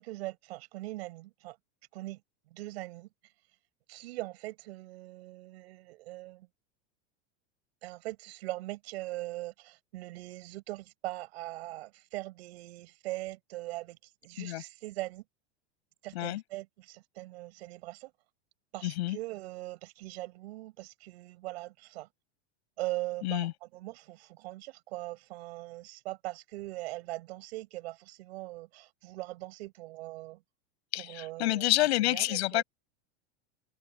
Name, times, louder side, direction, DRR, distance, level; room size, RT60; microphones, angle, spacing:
voice 1, 0.0-1.6 1.9-2.2 2.5-3.1 3.9-6.5 7.8-15.2 16.0-18.1 18.7-22.1 22.8-30.4 30.9-32.6, right 19 dB, 75° right, 6.1 m, -41 dB
voice 2, 18.8-19.2 23.2-23.5 30.9-32.6, left 16 dB, 80° left, 6.6 m, -28 dB
supercardioid pair, 150°, 32 cm